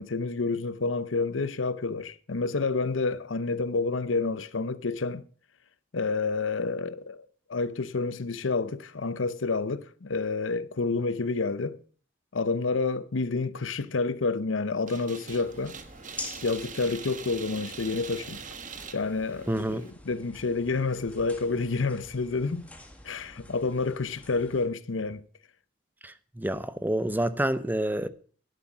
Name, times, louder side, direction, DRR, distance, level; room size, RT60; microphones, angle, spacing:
voice 1, 0.0-5.2 5.9-11.8 12.3-15.8 16.4-18.4 18.9-22.7 23.0-25.2, left 3 dB, 90° left, 0.8 m, -29 dB
sound 1, 14.9-19.9, right 6 dB, 45° right, 1.3 m, -43 dB
sound 2, 15.3-24.7, left 2 dB, 10° left, 2.0 m, -47 dB
voice 2, 19.5-19.8 26.0-28.1, right 1 dB, 10° right, 0.7 m, -28 dB
11.5 x 11.5 x 6.1 m
head